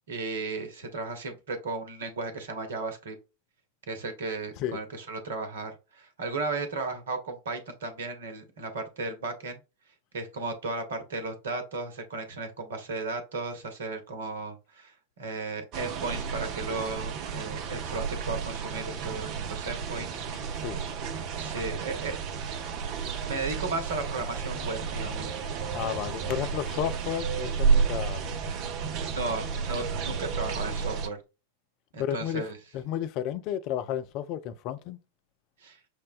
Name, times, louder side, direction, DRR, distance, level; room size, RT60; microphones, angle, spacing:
voice 1, 0.1-3.2 3.9-9.6 10.1-20.2 21.4-22.1 23.3-25.4 29.1-31.2 31.9-32.6 35.6-35.8, right 3 dB, 60° right, 1.0 m, -35 dB
sound 1, 15.7-31.1, right 6 dB, 40° right, 0.6 m, -31 dB
voice 2, 25.7-28.2 32.0-32.5 32.7-35.0, left 10 dB, 40° left, 0.4 m, -32 dB
6.3 x 2.2 x 2.4 m
figure-of-eight pair, 90°, 0 cm